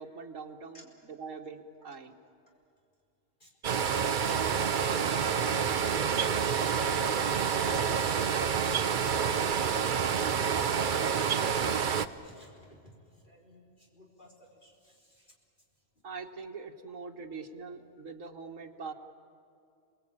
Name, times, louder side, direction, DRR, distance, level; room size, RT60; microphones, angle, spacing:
voice 1, 0.0-2.1 16.0-18.9, right 4 dB, 80° right, 3 dB, 1.8 m, -43 dB
sound 1, 3.6-12.1, right 7 dB, 45° right, 0.8 m, -28 dB
voice 2, 3.8-4.6 5.1-5.3 7.1-8.2 11.3-11.5 12.1-15.3, equal, 40° left, -2 dB, 4.2 m, -56 dB
29.5 x 20.0 x 9.0 m, 2.4 s
omnidirectional pair, 1.3 m